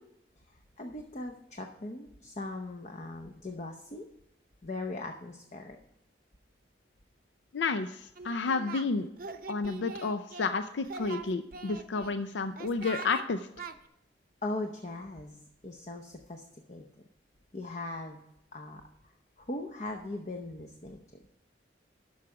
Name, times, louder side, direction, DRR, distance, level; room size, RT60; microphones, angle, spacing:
voice 1, 0.5-4.1 4.6-5.8 14.4-16.8 17.5-18.2 18.5-18.8 19.4-21.0, left 2 dB, 40° left, 4 dB, 0.8 m, -39 dB
voice 2, 7.5-9.1 9.5-13.5, left 4 dB, 90° left, 9 dB, 0.5 m, -31 dB
Singing, 8.2-8.9 9.2-10.5 10.8-12.1 12.6-13.2 13.6-13.7, right 5 dB, 50° right, 0.7 m, -42 dB
11.5 x 6.3 x 4.8 m, 0.83 s
head